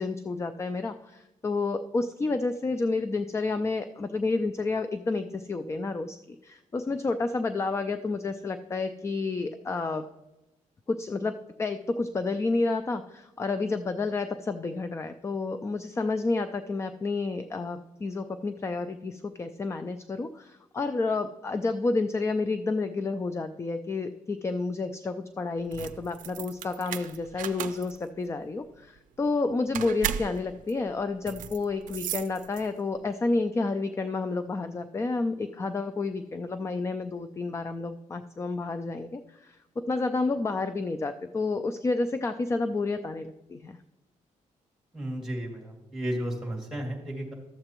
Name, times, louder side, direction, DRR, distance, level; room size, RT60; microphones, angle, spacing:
voice 1, 0.0-10.1 10.9-43.8, left 3 dB, 20° left, 10 dB, 0.4 m, -30 dB
sound 1, 25.6-32.9, right 10 dB, 85° right, 0.4 m, -37 dB
voice 2, 44.9-47.3, equal, 5° right, -1 dB, 2.3 m, -33 dB
12.5 x 7.7 x 3.0 m, 0.97 s
cardioid pair, 115°, 13 cm